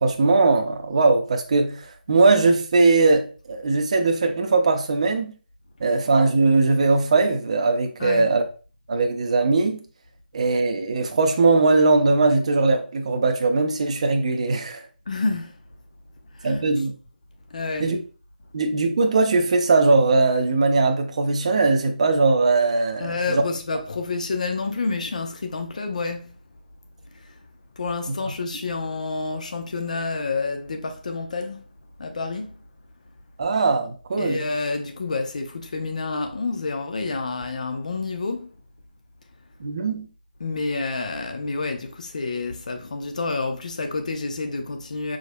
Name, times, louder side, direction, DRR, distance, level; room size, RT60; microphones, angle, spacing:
voice 1, 0.0-5.3 5.8-8.4 8.9-9.8 10.3-14.8 16.4-16.9 17.8-18.0 18.5-23.4 33.4-34.4 39.6-40.1, right 3 dB, 40° right, 0.7 m, -20 dB
voice 2, 15.1-15.5 16.3-16.7 17.5-17.9 23.0-26.4 27.1-27.3 27.8-31.7 32.0-32.5 34.2-38.5 40.4-45.2, left 3 dB, 50° left, 0.7 m, -29 dB
5.0 x 3.9 x 2.2 m
figure-of-eight pair, 150°, 5 cm